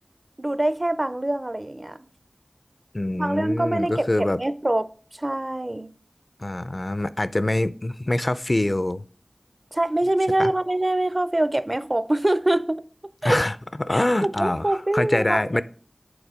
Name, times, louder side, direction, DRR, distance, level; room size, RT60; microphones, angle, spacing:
voice 1, 0.4-2.0 3.1-4.9 5.2-5.9 9.7-12.8 13.2-13.4 13.9-15.6, right 1 dB, 35° right, 0.5 m, -24 dB
voice 2, 2.9-4.4 6.4-9.0 10.4-10.5 13.2-15.6, left 1 dB, 45° left, 0.4 m, -24 dB
7.9 x 4.0 x 5.0 m
wide cardioid pair, 50°, 0 cm